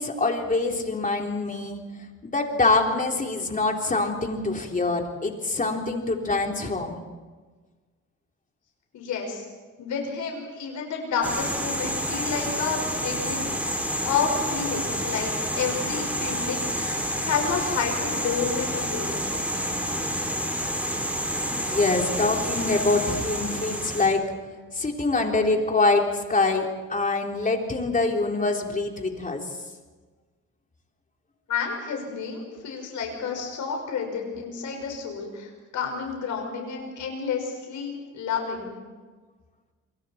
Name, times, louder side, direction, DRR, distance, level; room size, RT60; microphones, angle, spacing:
voice 1, 0.0-1.8 2.2-7.0 21.6-24.3 24.7-29.4, left 3 dB, 25° left, 2 dB, 3.8 m, -25 dB
voice 2, 8.9-9.5 9.8-19.2 31.5-38.8, left 5 dB, 70° left, 2 dB, 5.4 m, -30 dB
sound 1, 11.2-24.1, equal, 5° right, 5.8 m, -29 dB
28.5 x 23.5 x 4.4 m, 1.4 s
cardioid pair, 90°, 30 cm